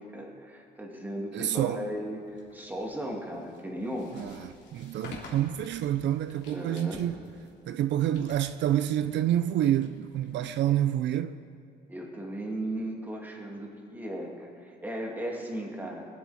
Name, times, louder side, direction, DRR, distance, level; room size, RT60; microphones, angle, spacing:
voice 1, 0.0-2.2 2.5-4.3 6.5-7.0 11.9-16.1, right 1 dB, 10° right, 2.2 m, -36 dB
voice 2, 1.3-1.9 4.2-7.2 7.7-11.4, right 11 dB, 80° right, 0.5 m, -28 dB
sound 1, 2.3-10.9, left 3 dB, 75° left, 2.9 m, -50 dB
20.5 x 10.5 x 4.1 m
cardioid pair, 135°, 18 cm